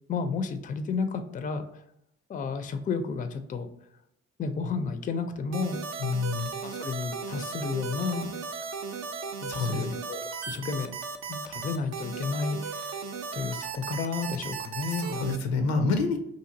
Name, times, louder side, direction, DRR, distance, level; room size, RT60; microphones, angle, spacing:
voice 1, 0.1-1.6 2.3-3.7 4.4-5.8 6.6-8.3 9.4-10.9 11.3-13.0 13.3-15.3, left 5 dB, 25° left, 9 dB, 0.4 m, -32 dB
sound 1, 5.5-15.4, right 5 dB, 55° right, 0.5 m, -36 dB
voice 2, 6.0-6.5 9.5-9.8 15.0-16.2, left 4 dB, 80° left, 6 dB, 0.5 m, -27 dB
2.8 x 2.5 x 2.5 m, 0.77 s
hypercardioid pair, 40°, 34 cm